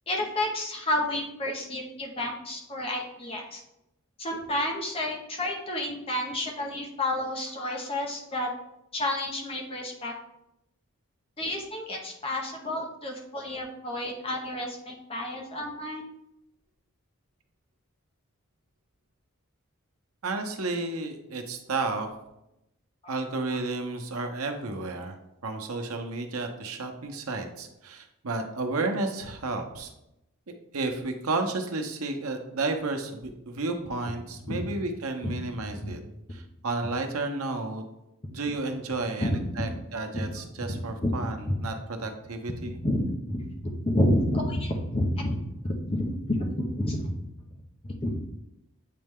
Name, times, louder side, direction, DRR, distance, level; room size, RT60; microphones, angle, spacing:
voice 1, 0.1-3.6 4.2-8.5 8.9-10.1 11.4-16.0 34.4-34.6 35.2-35.3 35.8-35.9 39.2-39.7 40.1-40.3 40.7-41.2 42.6-47.1 47.8-48.2, left 1 dB, 25° left, 1 dB, 0.8 m, -30 dB
voice 2, 20.2-22.1 23.1-25.1 25.4-29.9 30.5-36.0 36.3-37.8 38.3-41.7 42.0-42.8, right 3 dB, 85° right, 5 dB, 0.8 m, -32 dB
8.5 x 3.2 x 3.6 m, 0.86 s
head